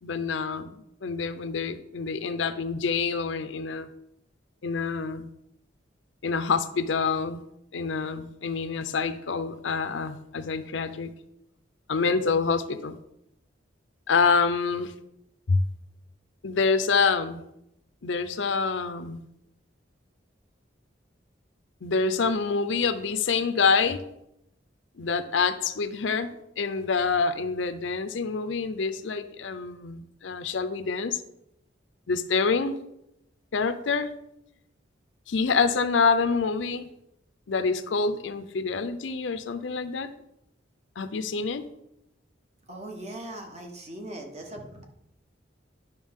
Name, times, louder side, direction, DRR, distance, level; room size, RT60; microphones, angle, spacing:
voice 1, 0.0-3.9 4.6-5.3 6.2-7.4 7.7-11.1 11.9-13.0 14.1-14.9 15.5-15.6 16.4-17.4 18.0-19.2 21.8-24.0 25.0-31.2 32.1-32.8 33.5-34.1 35.3-36.9 37.5-40.1 41.0-41.6, left 5 dB, 75° left, 11 dB, 0.6 m, -26 dB
voice 2, 42.7-44.8, right 1 dB, 35° right, 2 dB, 1.3 m, -39 dB
10.5 x 5.8 x 3.6 m, 0.83 s
head